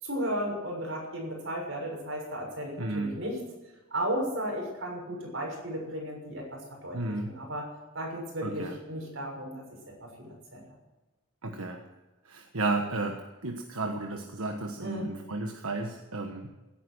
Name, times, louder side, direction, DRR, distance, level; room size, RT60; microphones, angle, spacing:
voice 1, 0.0-3.4 3.9-7.0 7.2-7.6 7.9-10.7 14.8-15.1, equal, 60° right, -1 dB, 6.7 m, -35 dB
voice 2, 2.8-3.2 6.9-7.4 8.4-8.8 11.4-11.8 12.2-16.5, right 2 dB, 85° right, 3 dB, 1.4 m, -33 dB
17.0 x 10.0 x 6.2 m, 1.1 s
head